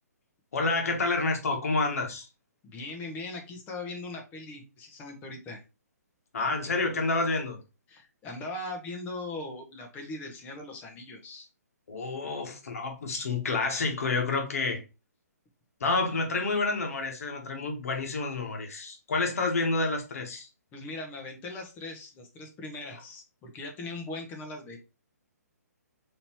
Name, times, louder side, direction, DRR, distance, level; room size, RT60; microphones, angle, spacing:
voice 1, 0.5-2.3 6.3-7.6 11.9-14.8 15.8-20.5, left 3 dB, 60° left, 1.3 m, -29 dB
voice 2, 2.6-5.6 7.9-11.5 20.7-24.8, left 2 dB, 20° left, 1.0 m, -40 dB
4.0 x 3.0 x 3.0 m
figure-of-eight pair, 130°, 9 cm